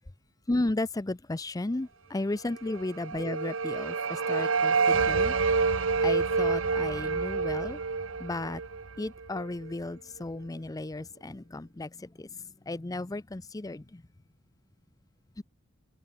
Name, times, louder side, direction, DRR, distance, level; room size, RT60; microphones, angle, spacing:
voice 1, 0.5-5.4 6.0-7.8 8.2-8.6 9.0-14.0 15.4-15.5, left 2 dB, 20° left, 0.5 m, -34 dB
sound 1, 2.7-9.7, right 4 dB, 75° right, 1.0 m, -28 dB
head